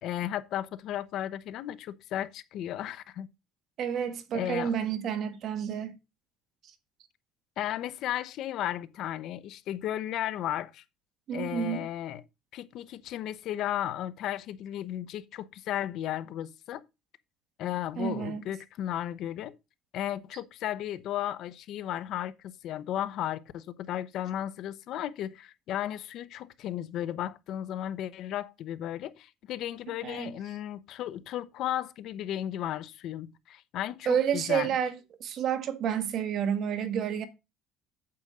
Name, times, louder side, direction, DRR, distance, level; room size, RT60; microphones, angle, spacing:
voice 1, 0.0-3.3 4.3-4.7 7.6-10.8 11.3-12.2 12.5-16.8 17.6-19.5 19.9-34.7, left 12 dB, 60° left, 0.8 m, -34 dB
voice 2, 3.8-5.9 11.3-11.8 18.0-18.4 30.0-30.3 34.0-37.3, right 8 dB, 50° right, 1.6 m, -30 dB
8.7 x 8.2 x 3.7 m
cardioid pair, 130°, 0 cm